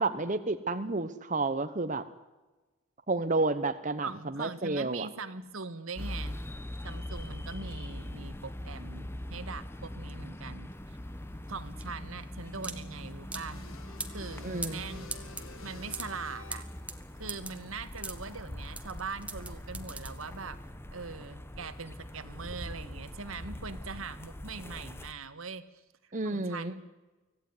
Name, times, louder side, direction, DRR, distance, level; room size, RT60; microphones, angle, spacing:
voice 1, 0.0-2.0 3.1-4.1 4.4-5.1 14.4-14.8 26.1-26.7, right 3 dB, 35° right, 10 dB, 1.0 m, -30 dB
voice 2, 4.0-6.4 6.8-11.0 11.5-13.6 14.1-15.1 15.6-16.7 17.2-20.6 20.9-25.6 26.0-26.8, right 4 dB, 80° right, 11 dB, 1.7 m, -41 dB
sound 1, 6.0-25.1, left 1 dB, 10° left, 1.1 m, -42 dB
sound 2, 10.7-20.6, right 3 dB, 5° right, 1.6 m, -42 dB
sound 3, 13.5-16.9, left 3 dB, 80° left, 2.8 m, -49 dB
25.5 x 16.5 x 9.7 m, 1.1 s
head